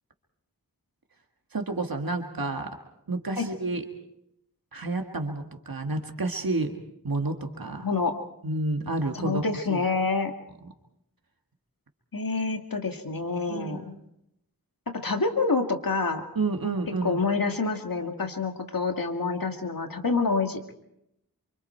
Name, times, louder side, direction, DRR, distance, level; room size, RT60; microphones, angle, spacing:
voice 1, 1.5-2.7 3.1-3.8 4.7-6.8 7.0-7.9 8.4-9.4 9.7-9.9 13.5-13.8 16.4-17.2, right 3 dB, 80° right, 3 dB, 1.8 m, -30 dB
voice 2, 7.8-8.1 9.1-10.3 12.1-13.9 14.9-16.3 17.0-20.8, left 4 dB, 75° left, 4 dB, 2.2 m, -27 dB
28.5 x 25.5 x 4.5 m, 0.81 s
wide cardioid pair, 45°, 35 cm